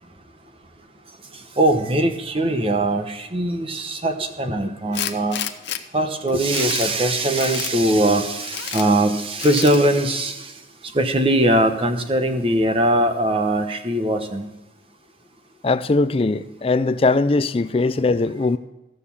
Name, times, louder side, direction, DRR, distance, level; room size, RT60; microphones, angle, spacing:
voice 1, 1.6-5.4 5.9-10.5 10.9-14.5, right 1 dB, 30° right, 1.0 m, -21 dB
Tools, 4.9-5.8 6.3-6.9 7.4-7.7 8.4-8.9 9.4-9.8, left 10 dB, 70° left, 0.7 m, -30 dB
voice 2, 15.6-18.6, left 3 dB, 30° left, 0.4 m, -20 dB
15.0 x 6.6 x 7.1 m
head